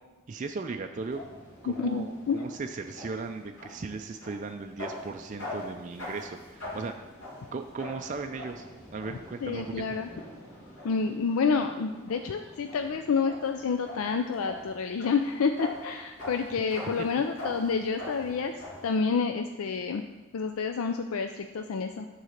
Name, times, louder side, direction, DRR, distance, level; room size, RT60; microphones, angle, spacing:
voice 1, 0.3-1.2 1.6-7.0 7.5-9.9 16.8-17.1, right 4 dB, 35° right, 5 dB, 0.3 m, -37 dB
sound 1, 0.9-18.9, left 1 dB, 60° left, 2.9 m, -43 dB
voice 2, 1.7-2.4 9.4-10.1 10.8-18.5 18.8-20.0 20.3-22.1, left 5 dB, 85° left, 6 dB, 0.4 m, -29 dB
9.3 x 3.9 x 6.5 m, 1.2 s
head